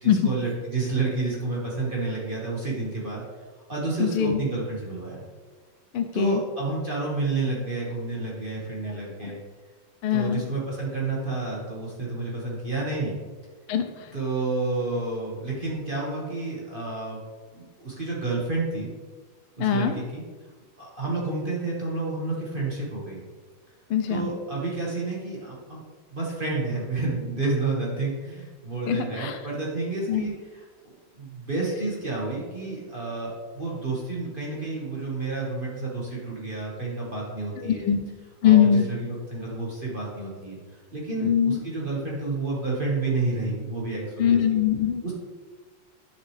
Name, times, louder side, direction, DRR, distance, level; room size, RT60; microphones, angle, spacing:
voice 1, 0.0-3.2 3.7-5.2 6.1-9.4 10.1-13.1 14.1-17.2 17.5-18.9 19.6-20.2 20.8-23.2 24.1-25.8 26.1-37.9 38.4-40.6 40.9-44.4 45.0-45.1, right 3 dB, 25° right, -5 dB, 1.4 m, -30 dB
voice 2, 4.0-4.4 5.9-6.4 9.2-9.3 10.0-10.4 13.7-14.1 19.6-19.9 23.9-24.3 28.9-29.4 30.1-30.3 37.6-38.0 38.4-38.9 41.2-41.6 44.2-45.0, left 9 dB, 85° left, 6 dB, 1.6 m, -22 dB
9.9 x 6.0 x 3.2 m, 1.4 s
omnidirectional pair, 2.4 m